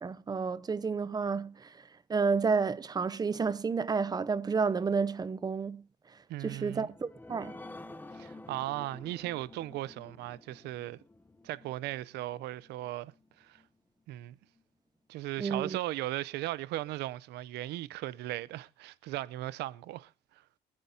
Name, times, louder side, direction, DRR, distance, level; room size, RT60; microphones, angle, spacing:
voice 1, 0.0-1.7 2.1-5.8 6.4-7.5 15.4-15.8, right 5 dB, 25° right, 0.7 m, -30 dB
voice 2, 6.3-6.9 8.1-11.0 11.4-13.1 13.4-13.6 14.1-14.4 15.1-20.1, right 16 dB, 80° right, 0.6 m, -37 dB
sound 1, 6.6-13.7 14.1-14.2 14.6-14.7, left 2 dB, 10° left, 0.7 m, -51 dB
24.0 x 9.9 x 2.8 m
cardioid pair, 110°, 17 cm